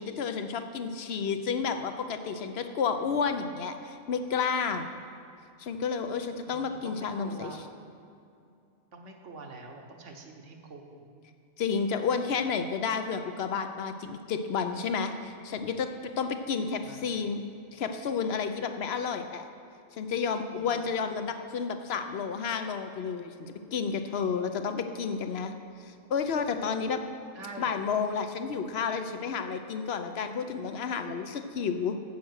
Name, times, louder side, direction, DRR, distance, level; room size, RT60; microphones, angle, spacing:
voice 1, 0.0-4.8 5.6-7.5 11.6-17.4 17.7-19.4 20.0-25.5 25.9-27.0 27.6-32.0, left 6 dB, 55° left, 8 dB, 0.8 m, -31 dB
voice 2, 6.4-7.6 8.9-11.2 16.6-17.0 20.5-20.9 27.3-27.7, right 3 dB, 60° right, 3 dB, 1.3 m, -45 dB
9.3 x 7.7 x 6.3 m, 2.5 s
omnidirectional pair, 1.5 m